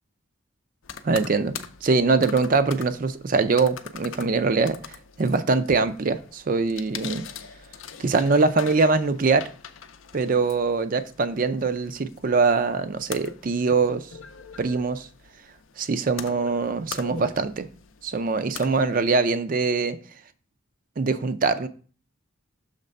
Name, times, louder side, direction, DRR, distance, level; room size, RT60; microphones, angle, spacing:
sound 1, 0.8-19.2, left 7 dB, 70° left, 0.5 m, -43 dB
voice 1, 1.0-1.6 1.8-7.2 8.0-9.5 10.1-14.1 14.6-15.1 15.8-17.7 18.0-20.0 21.0-21.7, right 4 dB, 40° right, 0.4 m, -23 dB
6.6 x 3.2 x 5.2 m
head